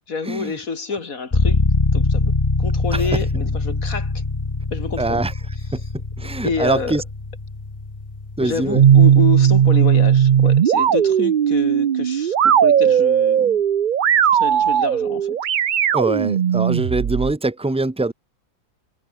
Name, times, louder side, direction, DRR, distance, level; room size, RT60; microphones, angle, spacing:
voice 1, 0.1-1.6 1.9-4.1 4.7-5.2 6.4-7.0 8.4-13.6 14.3-15.4, left 4 dB, 60° left, 3.1 m, -28 dB
sound 1, 1.3-9.1, left 3 dB, 20° left, 1.6 m, -23 dB
voice 2, 5.0-5.3 5.7-5.8 6.2-7.0 8.4-8.8 15.9-18.1, right 2 dB, 5° right, 1.2 m, -23 dB
sound 2, 8.7-17.3, right 9 dB, 70° right, 0.4 m, -16 dB
omnidirectional pair, 1.6 m